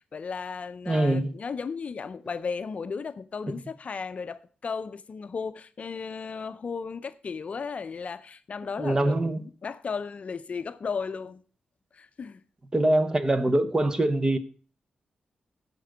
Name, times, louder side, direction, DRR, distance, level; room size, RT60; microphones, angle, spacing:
voice 1, 0.1-11.4 11.9-12.4, left 5 dB, 50° left, 0.5 m, -35 dB
voice 2, 0.9-1.3 8.8-9.4 12.7-14.4, right 1 dB, 25° right, 0.9 m, -23 dB
15.5 x 5.2 x 4.8 m
cardioid pair, 85°, 3 cm